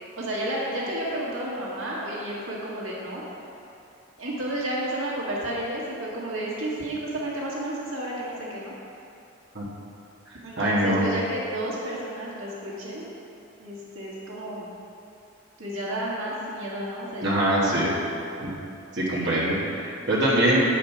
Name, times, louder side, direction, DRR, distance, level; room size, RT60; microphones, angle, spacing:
voice 1, 0.2-3.2 4.2-8.7 10.4-13.1 13.6-14.7 15.6-17.2, right 1 dB, 85° right, -5 dB, 1.9 m, -31 dB
voice 2, 10.6-11.0 17.2-17.9 18.4-18.5 19.0-20.6, right 1 dB, 55° right, -8 dB, 1.6 m, -23 dB
8.7 x 5.1 x 5.7 m, 2.7 s
head